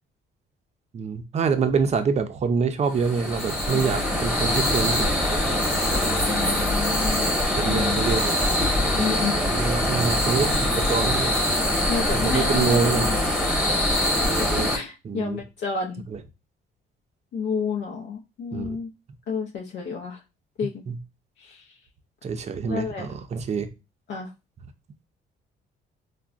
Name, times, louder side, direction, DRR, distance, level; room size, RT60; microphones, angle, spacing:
voice 1, 0.9-5.0 5.3-6.3 7.6-8.4 8.8-11.4 12.1-13.1 14.3-14.8 15.0-15.4 16.1-16.2 18.5-18.8 20.9-21.0 22.2-23.7, right 5 dB, 35° right, 8 dB, 0.5 m, -26 dB
sound 1, 2.9-14.8, left 1 dB, 5° right, 1.1 m, -23 dB
voice 2, 3.7-4.2 6.3-7.3 7.6-8.0 8.9-9.4 11.9-13.2 13.4-13.7 14.7-16.0 17.3-18.9 19.3-20.2 20.6-20.8 22.7-23.1 24.1-24.3, left 5 dB, 65° left, 0 dB, 0.6 m, -30 dB
3.6 x 2.1 x 2.4 m, 0.26 s
cardioid pair, 90°, 20 cm